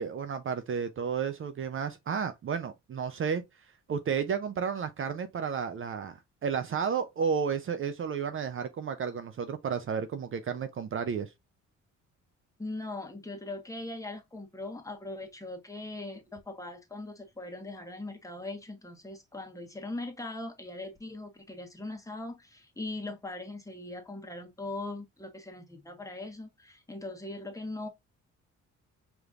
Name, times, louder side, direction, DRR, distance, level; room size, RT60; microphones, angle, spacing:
voice 1, 0.0-3.4 3.9-11.3, right 6 dB, 45° right, 0.6 m, -32 dB
voice 2, 12.6-27.9, left 2 dB, 10° left, 1.3 m, -40 dB
5.0 x 3.1 x 2.5 m
cardioid pair, 90°, 30 cm